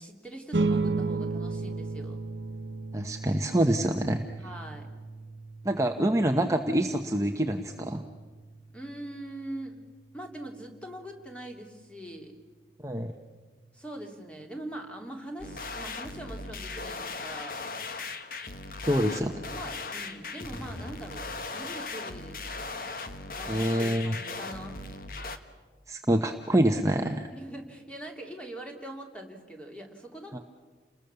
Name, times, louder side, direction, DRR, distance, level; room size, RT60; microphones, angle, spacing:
voice 1, 0.0-2.2 4.4-4.9 8.7-9.8 10.1-12.3 13.7-17.6 18.9-19.0 19.5-22.4 23.3-24.8 27.3-30.4, right 1 dB, 5° left, 2 dB, 2.9 m, -42 dB
sound 1, 0.5-11.3, right 3 dB, 80° right, 1.0 m, -35 dB
voice 2, 2.9-4.3 5.6-8.0 12.8-13.1 18.8-19.5 23.5-24.2 25.9-27.3 30.3-30.4, right 1 dB, 15° right, 4 dB, 0.9 m, -26 dB
sound 2, 15.4-25.4, left 3 dB, 50° left, 1.5 m, -38 dB
29.5 x 20.5 x 6.9 m, 1.4 s
head